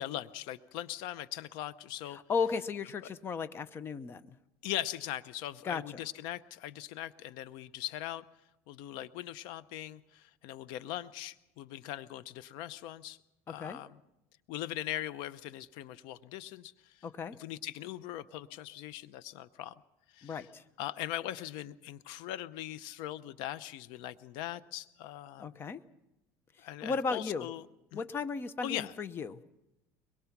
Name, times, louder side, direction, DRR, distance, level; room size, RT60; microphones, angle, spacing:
voice 1, 0.0-2.2 3.0-3.1 4.6-8.2 8.7-13.2 13.5-14.0 14.5-17.1 17.4-19.8 20.1-20.5 20.8-25.6 26.6-27.7 27.9-28.1 28.6-28.9, left 13 dB, 70° left, 16 dB, 0.7 m, -40 dB
voice 2, 2.1-4.2 5.6-5.8 13.6-13.8 17.0-17.4 20.2-20.6 25.4-25.8 26.8-27.5 27.9-29.4, left 5 dB, 30° left, 13 dB, 0.9 m, -35 dB
23.5 x 21.5 x 6.0 m, 0.92 s
cardioid pair, 135°, 8 cm